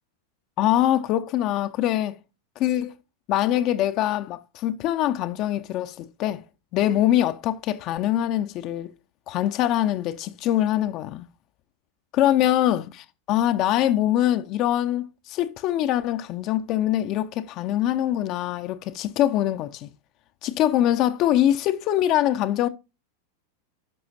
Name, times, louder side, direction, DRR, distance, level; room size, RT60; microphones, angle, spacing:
voice 1, 0.6-2.2 2.6-2.9 3.3-6.4 6.7-8.9 9.3-11.3 12.1-19.9 20.4-22.7, left 12 dB, 40° left, 0.4 m, -23 dB
10.5 x 5.5 x 2.7 m
figure-of-eight pair, 90°, 0 cm